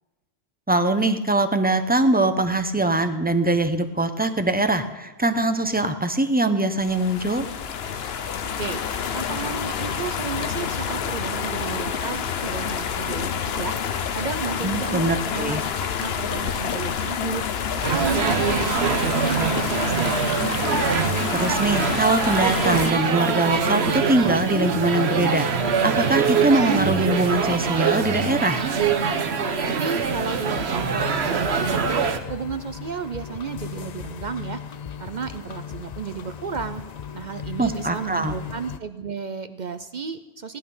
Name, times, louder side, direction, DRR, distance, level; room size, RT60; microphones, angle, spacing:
voice 1, 0.7-7.5 14.6-15.6 21.3-28.6 37.6-38.3, right 2 dB, 10° right, 8 dB, 0.8 m, -22 dB
sound 1, 6.8-22.9, left 7 dB, 75° left, 1.0 m, -28 dB
voice 2, 9.1-13.8 14.1-15.7 16.0-17.5 17.9-20.2 29.7-34.6 35.0-36.8 37.1-40.6, right 6 dB, 50° right, 10 dB, 0.7 m, -33 dB
sound 2, 17.8-32.2, right 5 dB, 80° right, 1.2 m, -24 dB
sound 3, 30.1-38.8, left 8 dB, 50° left, 0.6 m, -37 dB
17.5 x 10.5 x 5.5 m, 1.1 s
omnidirectional pair, 1.1 m